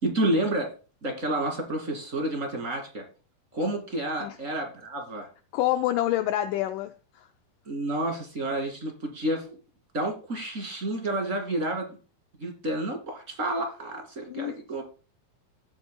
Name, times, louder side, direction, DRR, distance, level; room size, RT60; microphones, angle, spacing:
voice 1, 0.0-0.7 1.0-3.0 3.5-5.3 7.7-9.6 9.9-12.0 12.4-14.8, right 1 dB, 25° right, 2.1 m, -30 dB
voice 2, 5.5-7.3 14.3-14.5, left 14 dB, 90° left, 1.8 m, -27 dB
16.5 x 7.6 x 2.2 m
omnidirectional pair, 4.3 m